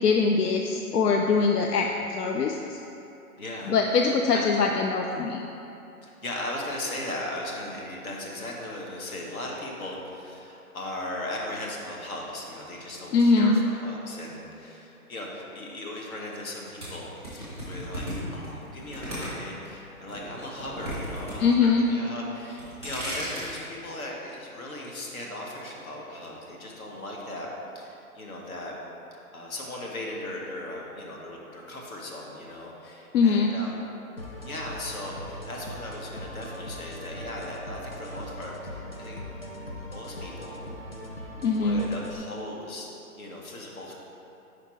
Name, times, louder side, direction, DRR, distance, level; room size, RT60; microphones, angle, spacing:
voice 1, 0.0-2.8 3.7-5.4 13.1-13.6 21.4-21.9 33.1-33.5 41.4-41.8, left 4 dB, 90° left, 2 dB, 0.6 m, -22 dB
voice 2, 3.4-3.7 4.3-4.5 6.0-18.1 18.3-27.5 27.7-28.7 29.3-33.8 34.5-39.2 39.7-40.6 41.3-42.9 43.2-43.9, left 1 dB, 65° left, -1 dB, 1.3 m, -37 dB
sound 1, 16.8-19.7 20.1-21.3 21.6-22.1 22.5-23.6, equal, 15° left, 1.0 m, -35 dB
sound 2, 34.2-42.2, equal, 45° left, 0.4 m, -40 dB
5.1 x 4.6 x 4.4 m, 2.9 s
hypercardioid pair, 175°, 45 cm